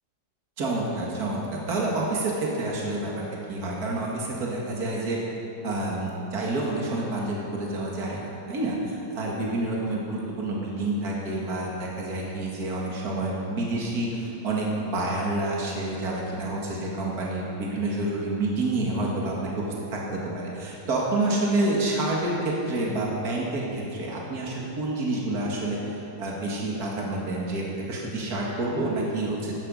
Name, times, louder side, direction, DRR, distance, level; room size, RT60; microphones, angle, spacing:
voice 1, 0.6-3.2 3.5-5.2 5.6-29.5, right 2 dB, 55° right, -3 dB, 2.5 m, -28 dB
17.0 x 12.0 x 5.5 m, 2.9 s
omnidirectional pair, 1.9 m